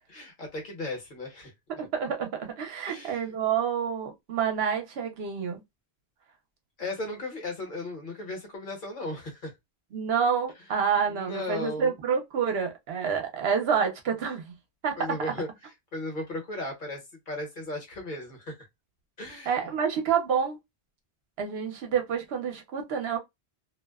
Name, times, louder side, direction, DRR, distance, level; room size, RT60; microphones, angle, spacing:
voice 1, 0.1-1.5 2.9-3.3 6.8-9.5 11.1-11.9 15.0-15.5 15.9-18.5 19.2-19.7, left 2 dB, 50° left, 1.2 m, -36 dB
voice 2, 1.8-5.6 9.9-14.4 14.8-15.3 19.5-20.6 21.4-23.2, right 7 dB, 70° right, 1.0 m, -28 dB
2.6 x 2.1 x 2.2 m
omnidirectional pair, 1.1 m